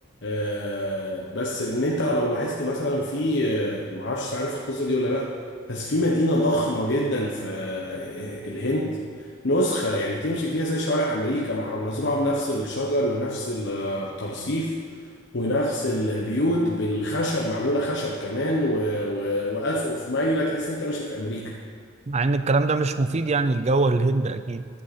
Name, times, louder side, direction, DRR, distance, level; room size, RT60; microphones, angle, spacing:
voice 1, 0.2-5.3 5.7-9.0 9.4-14.8 15.3-21.5, equal, 65° left, -2 dB, 1.2 m, -26 dB
voice 2, 22.1-24.7, right 3 dB, 35° right, 11 dB, 0.5 m, -22 dB
14.5 x 11.0 x 4.3 m, 2.2 s
head